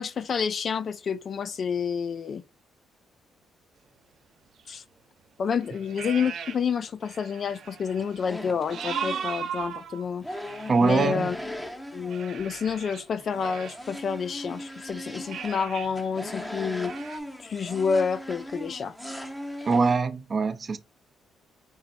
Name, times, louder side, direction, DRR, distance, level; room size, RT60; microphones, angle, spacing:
voice 1, 0.0-2.4 4.7-4.8 5.4-10.3 10.8-11.4 11.9-16.9 17.4-18.9, left 6 dB, 50° left, 0.4 m, -29 dB
sound 1, 4.6-4.7 5.5-6.8 7.0-11.0 12.0-14.8 15.2-15.9 16.3-16.4 16.8-17.2, right 8 dB, 70° right, 1.0 m, -38 dB
sound 2, 7.9-9.7 10.2-12.8 13.0-20.0, left 1 dB, 5° left, 0.8 m, -39 dB
voice 2, 10.7-11.3 19.7-20.8, right 4 dB, 40° right, 0.6 m, -23 dB
5.5 x 2.0 x 4.0 m
cardioid pair, 90°, 0 cm